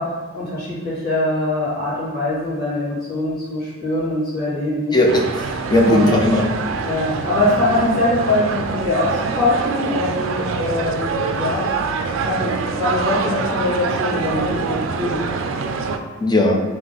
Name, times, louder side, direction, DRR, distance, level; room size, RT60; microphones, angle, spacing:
voice 1, 0.0-5.0 5.8-6.1 6.8-11.7 12.2-15.2, left 2 dB, 50° left, -10 dB, 1.5 m, -22 dB
voice 2, 4.9-6.5 16.2-16.6, left 1 dB, 20° left, 0 dB, 0.5 m, -17 dB
sound 1, 5.1-16.0, right 4 dB, 70° right, 0.4 m, -25 dB
3.5 x 2.9 x 3.8 m, 1.3 s
head